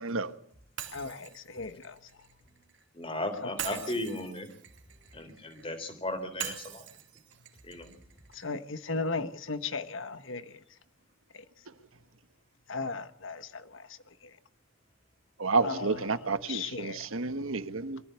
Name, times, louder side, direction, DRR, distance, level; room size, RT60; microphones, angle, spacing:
voice 1, 0.0-0.3 15.4-18.0, right 3 dB, 85° right, 1.2 m, -30 dB
Shatter, 0.8-2.8 3.6-5.7 6.4-8.5, right 10 dB, 60° right, 2.6 m, -43 dB
voice 2, 0.9-1.9 8.4-10.4 12.7-13.8 15.6-16.0 16.5-17.0, left 4 dB, 70° left, 1.2 m, -36 dB
voice 3, 2.9-4.5 5.1-6.8 7.6-7.9, left 1 dB, 25° left, 3.5 m, -36 dB
23.0 x 14.0 x 8.2 m
head